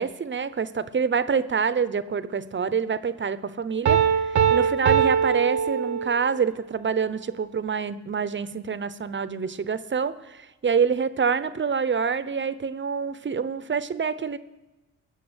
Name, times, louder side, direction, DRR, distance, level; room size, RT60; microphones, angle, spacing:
voice 1, 0.0-14.4, right 6 dB, 40° right, 14 dB, 0.9 m, -26 dB
Piano, 3.8-6.4, right 7 dB, 80° right, 1.1 m, -22 dB
20.5 x 7.1 x 8.9 m, 1.1 s
cardioid pair, 80°, 29 cm